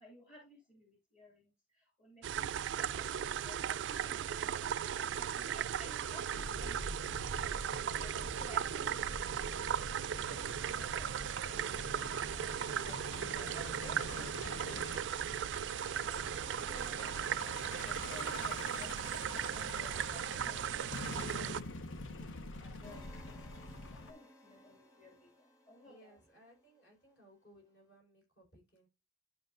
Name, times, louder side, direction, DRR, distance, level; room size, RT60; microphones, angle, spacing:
voice 1, 0.0-7.1 7.7-9.4 10.2-14.8 16.6-19.1 19.5-21.7 22.0-23.5 23.9-26.2, left 1 dB, 40° left, 1 dB, 2.4 m, -57 dB
sound 1, 2.2-21.6, right 9 dB, 65° right, 0.3 m, -37 dB
Truck, 6.3-24.1, left 2 dB, 85° left, 0.8 m, -46 dB
sound 2, 22.8-26.9, equal, 20° left, 1.5 m, -59 dB
voice 2, 25.8-28.9, equal, 60° left, 0 dB, 5.2 m, -62 dB
11.5 x 5.4 x 2.6 m, 0.24 s
head